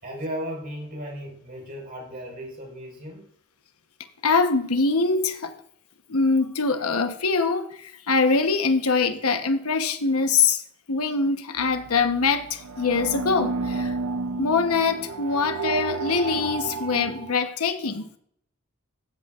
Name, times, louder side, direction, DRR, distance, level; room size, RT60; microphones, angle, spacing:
voice 1, 0.0-3.3, equal, 45° right, 4.7 m, -35 dB
voice 2, 4.2-5.5 6.1-10.6 10.9-13.9 14.4-18.1, left 4 dB, 90° left, 1.0 m, -23 dB
sound 1, 11.6-17.4, right 4 dB, 80° right, 0.5 m, -31 dB
14.5 x 8.2 x 2.5 m
head